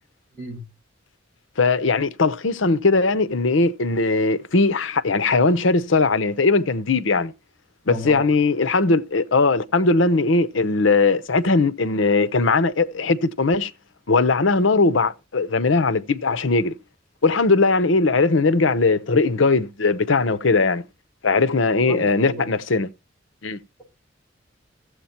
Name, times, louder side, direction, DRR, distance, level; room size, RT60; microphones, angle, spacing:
voice 1, 1.6-7.3 7.9-13.7 14.1-16.7 17.2-20.9 21.2-22.9 23.4-23.6, left 3 dB, 80° left, 0.8 m, -19 dB
voice 2, 7.8-8.2 21.9-22.5, left 1 dB, 10° left, 6.6 m, -31 dB
14.5 x 7.9 x 4.4 m
head